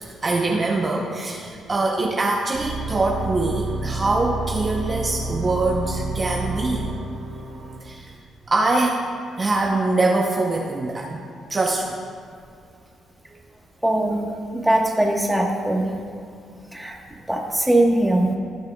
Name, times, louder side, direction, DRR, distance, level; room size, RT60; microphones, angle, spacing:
voice 1, 0.0-6.9 7.8-8.1 8.5-9.0 9.4-11.2 11.5-12.0, right 2 dB, 30° right, 0 dB, 0.8 m, -23 dB
sound 1, 2.5-7.8, right 2 dB, 75° right, 2.1 m, -29 dB
voice 2, 13.8-14.3 14.6-15.9 16.7-16.9 17.3-18.3, right 1 dB, 5° right, 0 dB, 1.4 m, -20 dB
18.5 x 6.5 x 2.3 m, 2.3 s
cardioid pair, 90°, 0 cm